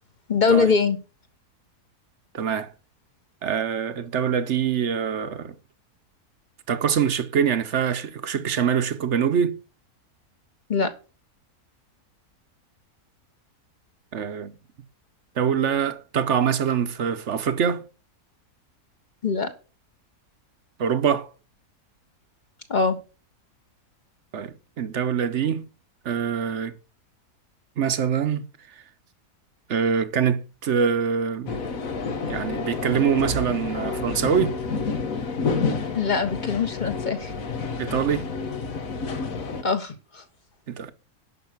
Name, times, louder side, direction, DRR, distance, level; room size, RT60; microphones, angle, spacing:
voice 1, 0.3-1.0 10.7-10.9 19.2-19.5 22.7-23.0 35.9-37.3 39.6-40.2, left 5 dB, 30° left, 1.5 m, -22 dB
voice 2, 2.3-2.7 3.4-5.5 6.7-9.6 14.1-14.6 15.4-17.8 20.8-21.3 24.3-25.6 26.0-26.7 27.8-28.4 29.7-31.6 32.3-34.6 37.8-38.3 40.7-40.9, right 7 dB, 55° right, 1.2 m, -24 dB
sound 1, 31.5-39.6, left 4 dB, 65° left, 1.6 m, -29 dB
11.0 x 6.5 x 6.1 m
omnidirectional pair, 1.6 m